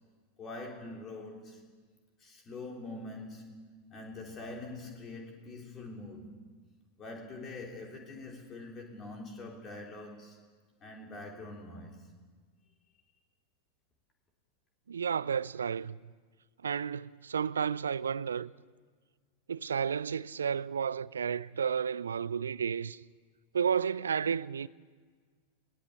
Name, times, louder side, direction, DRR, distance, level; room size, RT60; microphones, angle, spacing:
voice 1, 0.4-1.7 2.2-6.4 7.0-10.4 10.8-12.1, left 2 dB, 25° left, 3.5 m, -44 dB
voice 2, 14.9-16.0 16.6-18.5 19.5-23.0 23.5-24.7, right 7 dB, 70° right, 0.5 m, -32 dB
21.0 x 18.0 x 8.7 m
figure-of-eight pair, 90°, 0 cm